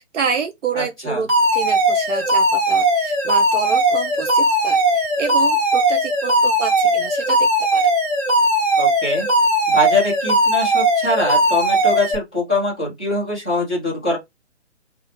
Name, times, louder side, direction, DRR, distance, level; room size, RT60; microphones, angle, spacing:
voice 1, 0.0-7.9, right 6 dB, 80° right, 0.5 m, -28 dB
voice 2, 0.8-1.2 8.8-9.3 9.7-14.2, left 1 dB, 5° left, 0.4 m, -23 dB
Alarm, 1.3-12.1, right 1 dB, 20° right, 1.3 m, -18 dB
2.3 x 2.1 x 2.8 m
figure-of-eight pair, 135°, 36 cm